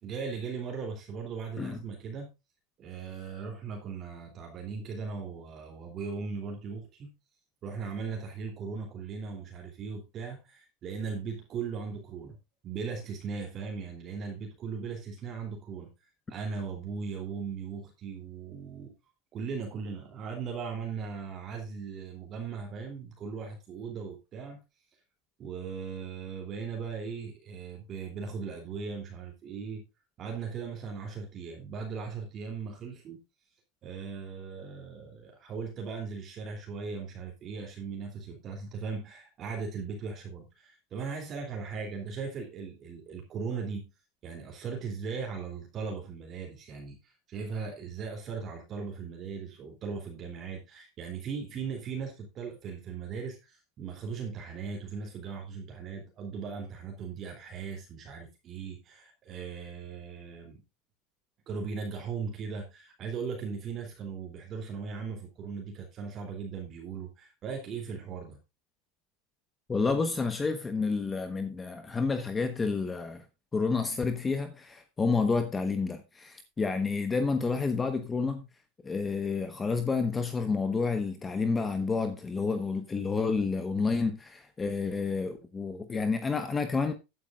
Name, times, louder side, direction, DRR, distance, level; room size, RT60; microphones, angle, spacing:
voice 1, 0.0-2.3 2.8-7.1 7.6-12.4 12.6-15.9 16.3-18.9 19.3-24.6 25.4-29.8 30.2-33.2 33.8-43.9 44.2-60.6 61.5-68.4, right 5 dB, 35° right, 3.0 m, -38 dB
voice 2, 69.7-73.2 73.5-78.4 78.8-86.9, left 4 dB, 15° left, 1.1 m, -29 dB
14.0 x 9.4 x 2.4 m
supercardioid pair, 120°, 0 cm